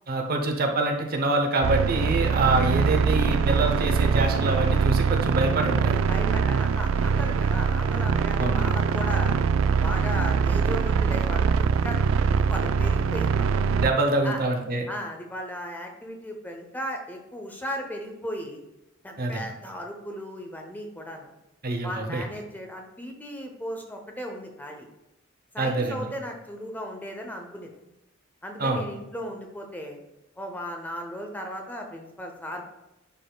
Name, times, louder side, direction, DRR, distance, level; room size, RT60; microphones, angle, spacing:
voice 1, 0.1-6.0 8.4-8.6 13.8-14.9 19.2-19.4 21.6-22.2 25.6-26.1 28.6-28.8, right 2 dB, 45° right, 3 dB, 0.8 m, -25 dB
sound 1, 1.6-13.9, right 5 dB, 75° right, 0.3 m, -23 dB
voice 2, 6.1-9.4 9.8-13.5 14.2-14.4 14.9-18.6 19.0-21.4 21.8-24.9 25.5-27.7 28.4-30.0 30.4-32.7, equal, 10° left, 2 dB, 0.7 m, -36 dB
10.0 x 4.1 x 2.3 m, 0.94 s
head